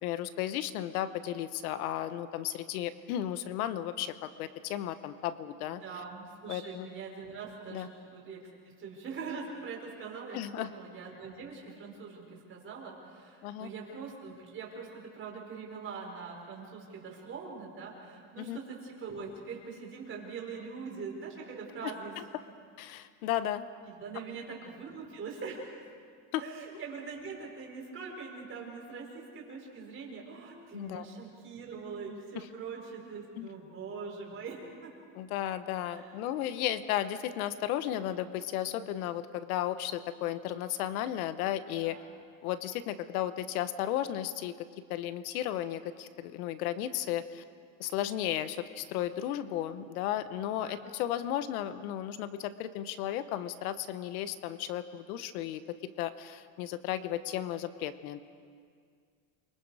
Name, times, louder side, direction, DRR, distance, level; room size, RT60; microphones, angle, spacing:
voice 1, 0.0-5.8 6.5-6.9 7.7-7.9 10.3-10.7 13.4-13.7 18.4-18.6 21.8-22.2 22.8-23.7 26.3-26.4 30.7-31.1 32.3-32.4 33.4-33.5 35.1-42.0 42.4-44.5 44.9-47.4 47.8-55.6 56.0-58.2, left 12 dB, 90° left, 12 dB, 1.2 m, -34 dB
voice 2, 5.7-22.1 23.9-25.7 26.4-34.9 35.8-36.1 41.8-42.2 50.5-50.9, right 5 dB, 30° right, -1 dB, 5.1 m, -43 dB
28.5 x 24.0 x 4.9 m, 2.2 s
cardioid pair, 145°, 42 cm